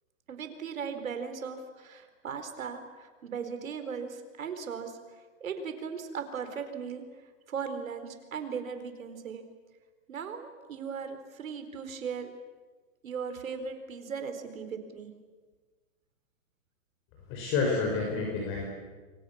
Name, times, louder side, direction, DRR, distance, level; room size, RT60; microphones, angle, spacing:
voice 1, 0.3-5.0 5.4-7.0 7.5-9.4 10.1-12.3 13.0-15.1, right 6 dB, 90° right, 8 dB, 4.4 m, -38 dB
voice 2, 17.3-18.6, left 4 dB, 30° left, -1 dB, 5.7 m, -29 dB
29.5 x 23.0 x 7.2 m, 1.4 s
hypercardioid pair, 145°, 39 cm